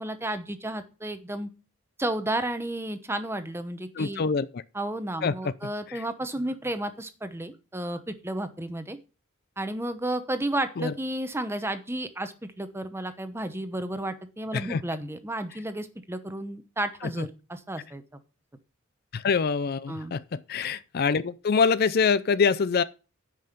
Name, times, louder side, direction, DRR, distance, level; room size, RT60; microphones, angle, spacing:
voice 1, 0.0-1.5 2.0-4.2 4.7-9.0 9.6-18.0 19.9-20.1, right 1 dB, 10° right, 0.9 m, -32 dB
voice 2, 4.0-4.6 5.2-5.5 5.9-6.0 10.8-10.9 14.5-14.8 17.0-17.3 19.1-22.8, left 5 dB, 45° left, 0.4 m, -25 dB
9.5 x 5.5 x 6.6 m
head